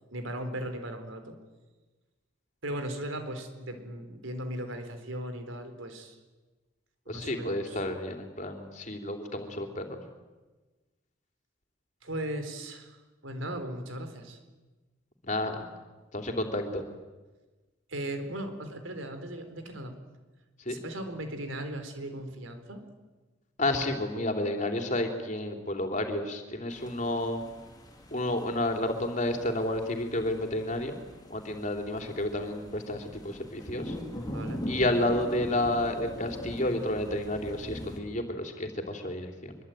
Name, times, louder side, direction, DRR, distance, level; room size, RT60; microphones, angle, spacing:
voice 1, 0.1-1.4 2.6-6.2 7.1-7.9 12.0-13.0 13.2-14.4 17.9-19.9 20.7-22.8 34.1-34.7, right 1 dB, 75° right, 8 dB, 4.2 m, -37 dB
voice 2, 7.1-10.0 15.2-15.7 16.1-16.8 20.7-20.8 23.6-27.4 28.1-31.0 31.3-34.0 34.7-39.6, left 1 dB, 35° left, 4 dB, 3.5 m, -31 dB
sound 1, 26.7-38.0, equal, 20° left, 3.9 m, -42 dB
24.5 x 23.5 x 9.3 m, 1.2 s
head